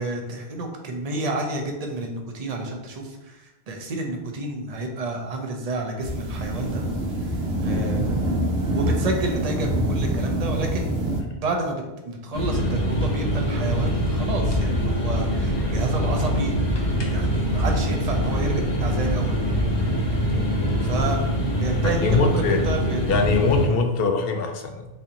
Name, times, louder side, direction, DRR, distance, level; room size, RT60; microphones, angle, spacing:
voice 1, 0.0-6.8 7.6-8.2 8.7-10.9 11.4-11.8 12.0-16.6 17.1-19.4 20.8-21.2 21.6-23.0, right 2 dB, 45° right, 2 dB, 0.7 m, -29 dB
sound 1, 6.0-11.2, right 1 dB, 75° right, 0.9 m, -25 dB
sound 2, 12.3-23.7, equal, 30° left, 0.6 m, -24 dB
voice 2, 22.0-22.6 23.1-24.9, left 4 dB, 65° left, 5 dB, 0.8 m, -22 dB
4.3 x 3.7 x 2.9 m, 1.0 s
omnidirectional pair, 1.1 m